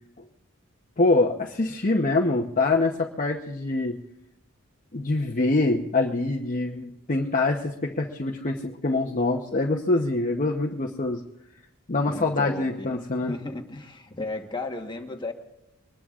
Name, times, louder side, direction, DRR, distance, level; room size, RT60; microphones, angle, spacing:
voice 1, 1.0-3.9 4.9-11.2 11.9-13.3, left 2 dB, 40° left, 0 dB, 0.9 m, -24 dB
voice 2, 12.1-12.9 13.2-15.3, left 2 dB, 20° left, 4 dB, 1.2 m, -34 dB
24.0 x 20.0 x 2.5 m, 0.89 s
head